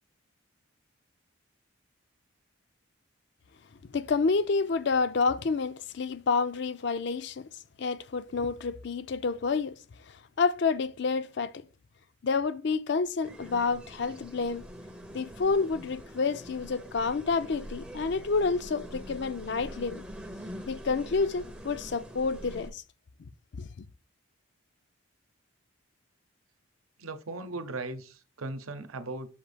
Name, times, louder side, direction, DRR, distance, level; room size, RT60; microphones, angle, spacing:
voice 1, 3.9-7.5 7.8-9.8 10.1-11.5 12.2-14.7 15.1-20.0 20.7-22.8 23.6-23.8, left 4 dB, 55° left, 0.4 m, -29 dB
sound 1, 13.2-22.7, equal, 5° right, 0.5 m, -44 dB
voice 2, 27.0-29.3, right 2 dB, 85° right, 0.8 m, -38 dB
7.1 x 2.7 x 5.0 m
head